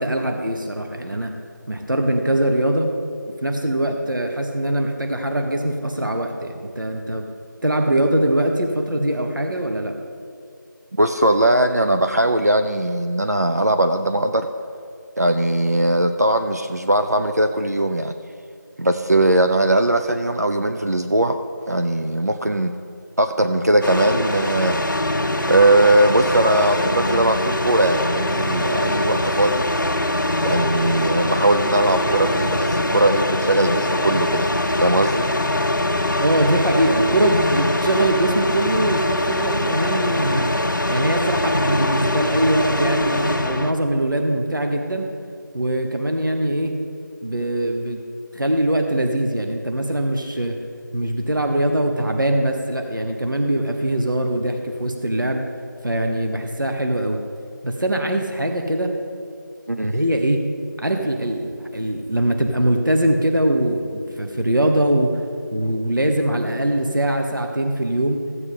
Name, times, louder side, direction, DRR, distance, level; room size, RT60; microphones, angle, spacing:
voice 1, 0.0-1.3 1.7-2.9 3.4-7.3 7.6-10.0 36.2-40.5 40.9-45.1 45.5-46.8 47.2-48.0 48.3-50.6 50.9-55.4 55.8-57.2 57.6-58.9 59.8-60.4 60.8-65.2 65.5-68.2, right 1 dB, 75° right, 3 dB, 1.0 m, -22 dB
voice 2, 11.0-14.5 15.2-18.1 18.8-21.4 21.7-22.7 23.2-24.8 25.5-29.7 30.4-34.5 34.8-35.3 59.7-59.9, right 1 dB, 50° right, 6 dB, 0.4 m, -19 dB
sound 1, 23.8-43.7, left 1 dB, 70° left, 0.8 m, -22 dB
14.5 x 8.0 x 3.8 m, 2.3 s
figure-of-eight pair, 175°, 11 cm